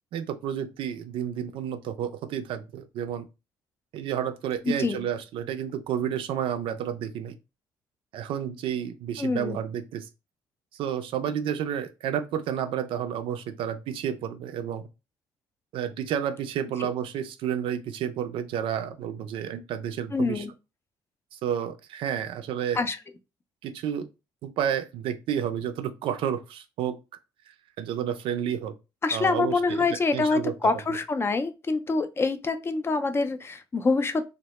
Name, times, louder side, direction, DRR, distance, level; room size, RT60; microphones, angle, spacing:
voice 1, 0.1-3.3 3.9-7.4 8.1-10.1 10.8-14.8 15.7-20.4 21.3-22.8 23.6-24.1 24.4-27.0 27.8-28.7 29.1-29.9 30.1-30.5, right 9 dB, 75° right, 0.4 m, -30 dB
voice 2, 4.7-5.0 9.2-9.6 20.1-20.5 22.8-23.0 29.0-34.3, left 3 dB, 25° left, 0.3 m, -26 dB
2.0 x 2.0 x 2.9 m
cardioid pair, 85°, 9 cm